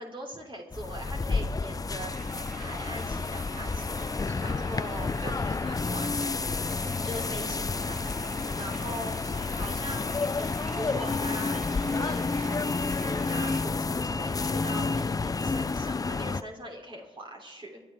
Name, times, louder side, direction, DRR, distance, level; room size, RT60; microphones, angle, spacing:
voice 1, 0.0-2.3 2.6-4.1 4.4-6.7 7.0-8.1 8.5-9.2 9.5-10.1 10.4-17.8, equal, 35° right, 0 dB, 3.3 m, -41 dB
sound 1, 0.7-16.4, left 4 dB, 25° left, 0.5 m, -30 dB
sound 2, 2.1-13.7, right 6 dB, 65° right, 1.1 m, -48 dB
25.0 x 11.0 x 3.5 m, 1.2 s
supercardioid pair, 50°, 14 cm